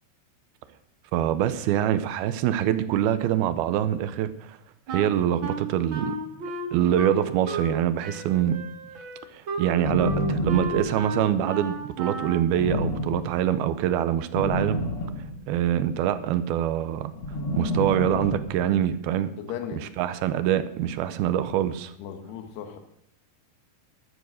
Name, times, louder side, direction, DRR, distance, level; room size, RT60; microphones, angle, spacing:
voice 1, 1.1-4.6 4.9-6.2 6.7-8.5 9.3-14.8 15.5-17.1 17.5-19.3 20.0-21.9, right 11 dB, 75° right, 12 dB, 2.5 m, -24 dB
Wind instrument woodwind instrument, 4.9-7.8 8.0-12.5, right 2 dB, 60° right, 1.3 m, -33 dB
sound 1, 9.8-11.3 12.5-13.5 14.3-15.9 17.2-18.7, left 1 dB, 55° left, 1.6 m, -29 dB
voice 2, 19.4-19.9 22.0-22.8, left 8 dB, 75° left, 6 dB, 3.5 m, -36 dB
13.0 x 12.0 x 6.3 m, 0.72 s
omnidirectional pair, 4.8 m